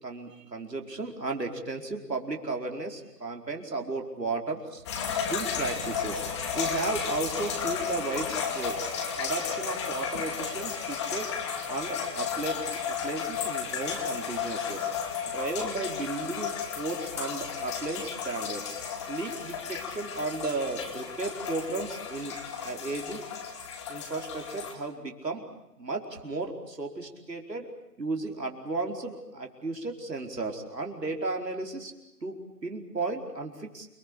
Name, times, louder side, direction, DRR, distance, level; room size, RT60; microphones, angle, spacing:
voice 1, 0.0-4.8 5.3-6.2 6.5-8.8 9.2-11.3 11.7-14.9 15.3-18.6 19.1-23.2 23.9-27.7 28.0-31.9 32.2-33.9, right 3 dB, 80° right, 2 dB, 4.9 m, -34 dB
sound 1, 4.9-24.7, left 6 dB, 15° left, 2.4 m, -33 dB
29.0 x 21.5 x 8.5 m, 0.89 s
figure-of-eight pair, 155°, 49 cm